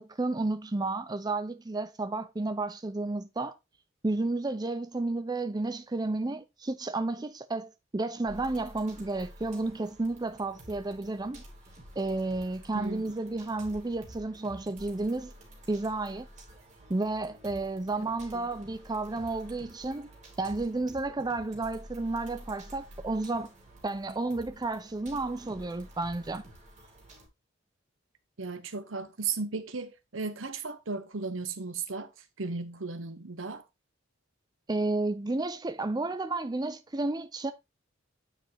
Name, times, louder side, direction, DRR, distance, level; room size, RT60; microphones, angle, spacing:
voice 1, 0.0-3.5 4.0-11.4 12.0-15.3 15.7-16.3 16.9-20.1 20.4-23.5 23.8-26.4 34.7-37.5, right 2 dB, 20° right, 0.5 m, -32 dB
sound 1, 8.3-27.3, equal, 40° right, 2.7 m, -50 dB
voice 2, 28.4-32.1 32.4-33.6, right 4 dB, 75° right, 1.1 m, -35 dB
9.1 x 4.9 x 3.4 m
head